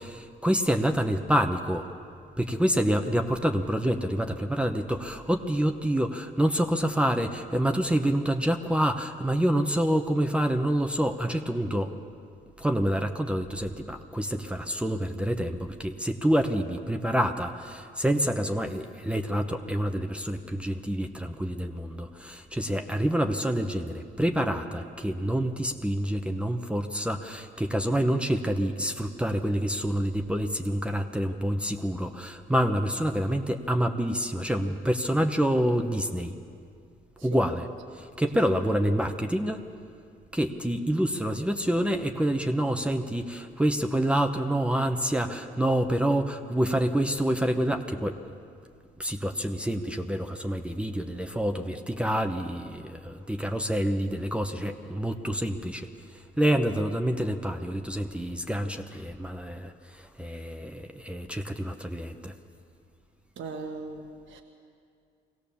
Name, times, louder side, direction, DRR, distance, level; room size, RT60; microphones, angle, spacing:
voice 1, 0.0-1.9 2.4-11.9 12.6-36.3 37.2-37.7 38.2-39.6 40.3-48.2 49.0-55.9 56.4-59.7 60.2-62.3, equal, 5° right, 5 dB, 0.9 m, -27 dB
voice 2, 63.4-64.4, right 4 dB, 75° right, 3 dB, 1.3 m, -39 dB
22.5 x 17.0 x 7.1 m, 2.3 s
cardioid pair, 90°, 20 cm